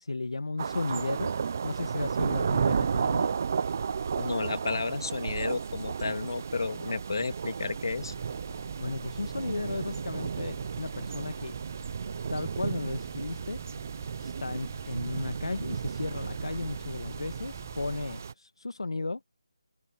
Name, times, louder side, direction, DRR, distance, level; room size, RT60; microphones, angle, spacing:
voice 1, 0.0-1.3 1.6-3.3 8.8-11.5 12.3-13.6 14.2-19.2, left 3 dB, 85° left, 1.4 m, -34 dB
sound 1, 0.6-18.3, right 6 dB, 30° right, 0.4 m, -33 dB
voice 2, 4.1-8.1, left 4 dB, 55° left, 2.8 m, -32 dB
sound 2, 7.9-18.2, right 4 dB, 5° right, 1.0 m, -52 dB
figure-of-eight pair, 175°, 3 cm